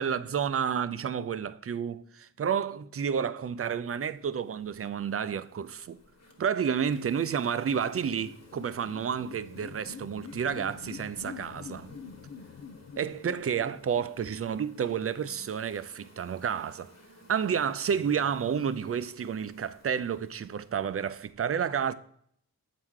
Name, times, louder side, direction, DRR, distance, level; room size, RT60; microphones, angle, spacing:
voice 1, 0.0-6.0 6.4-11.9 13.0-16.9 17.3-21.9, right 7 dB, 40° right, 0.5 m, -30 dB
Insect, 3.9-21.3, left 1 dB, 45° left, 1.4 m, -57 dB
sound 1, 6.1-15.8, left 6 dB, 80° left, 0.7 m, -47 dB
7.7 x 4.6 x 3.6 m
cardioid pair, 55°, 37 cm